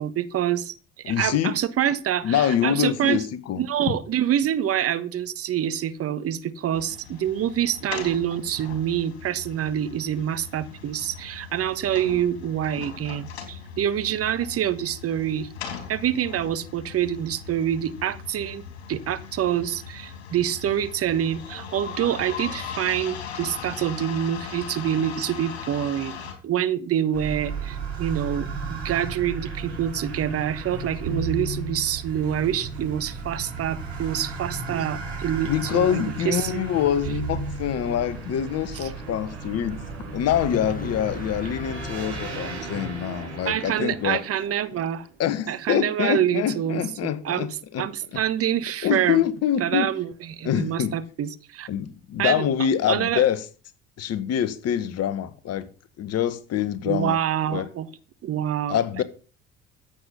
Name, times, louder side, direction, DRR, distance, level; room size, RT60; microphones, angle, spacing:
voice 1, 0.0-3.3 3.6-15.5 15.9-36.7 38.7-38.9 43.4-45.1 45.5-49.2 49.6-51.7 52.2-52.5 52.9-53.2 56.9-57.9 58.2-59.0, right 10 dB, 45° right, 1.4 m, -26 dB
voice 2, 1.0-1.5 2.2-3.6 35.4-39.8 40.1-44.2 45.2-47.9 48.1-48.2 48.8-49.9 50.4-50.9 51.7-53.4 54.0-55.7 56.0-57.2 57.5-57.7 58.7-59.0, left 10 dB, 50° left, 1.6 m, -25 dB
sound 1, 6.7-26.3, left 7 dB, 80° left, 3.4 m, -39 dB
sound 2, 27.1-45.1, right 3 dB, 80° right, 4.1 m, -34 dB
sound 3, 40.3-43.5, left 2 dB, 25° left, 3.1 m, -39 dB
14.5 x 8.3 x 5.7 m
hypercardioid pair, 60°, 32 cm